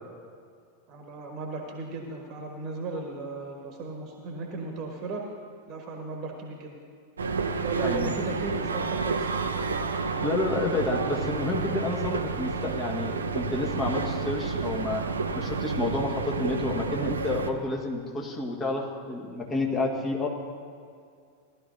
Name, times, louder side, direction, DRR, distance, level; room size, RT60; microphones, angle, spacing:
voice 1, 0.9-5.2 5.7-6.8 7.6-9.5, right 3 dB, 35° right, 2 dB, 1.3 m, -36 dB
sound 1, 7.2-17.5, right 4 dB, 70° right, 0.6 m, -30 dB
voice 2, 7.8-8.1 10.2-15.0 15.3-20.3, left 2 dB, 20° left, 0 dB, 1.6 m, -30 dB
17.5 x 12.0 x 2.7 m, 2.3 s
figure-of-eight pair, 90°, 0 cm